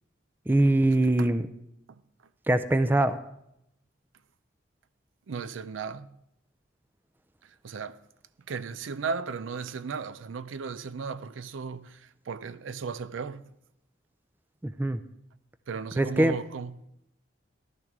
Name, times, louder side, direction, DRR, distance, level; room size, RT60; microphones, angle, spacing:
voice 1, 0.5-1.5 2.5-3.2 14.6-15.0 16.0-16.3, right 1 dB, 10° right, 0.4 m, -23 dB
voice 2, 5.3-6.2 7.6-8.0 8.5-13.4 15.7-16.8, right 5 dB, 80° right, 0.5 m, -35 dB
15.5 x 11.5 x 3.6 m
head